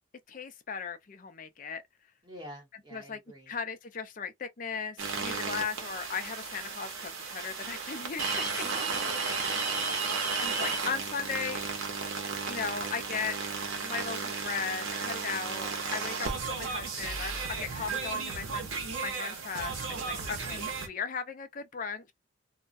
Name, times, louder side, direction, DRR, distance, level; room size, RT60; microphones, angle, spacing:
voice 1, 0.3-1.8 2.9-3.2 3.5-8.7 10.4-11.6 12.5-13.4 13.8-18.7 19.0-22.1, left 6 dB, 40° left, 0.4 m, -37 dB
voice 2, 2.2-3.5 8.6-9.9 20.1-20.6, equal, 20° right, 1.1 m, -48 dB
sound 1, 5.0-20.9, right 4 dB, 80° right, 0.8 m, -34 dB
2.3 x 2.1 x 2.5 m
head